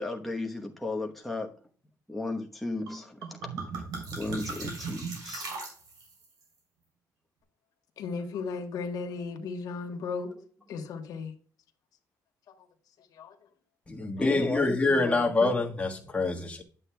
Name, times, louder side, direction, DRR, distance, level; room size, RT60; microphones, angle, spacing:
voice 1, 0.0-1.5 2.1-3.4 4.1-5.5 10.0-10.1 14.1-15.6, left 2 dB, ahead, 1.0 m, -35 dB
sound 1, 2.9-3.0 3.2-6.2, right 4 dB, 80° right, 3.4 m, -37 dB
voice 2, 8.0-10.3 10.7-11.3 13.1-13.3 14.2-14.3, left 4 dB, 75° left, 1.2 m, -35 dB
voice 3, 13.9-16.6, left 3 dB, 20° left, 1.5 m, -26 dB
9.9 x 7.9 x 2.3 m
cardioid pair, 105°, 7 cm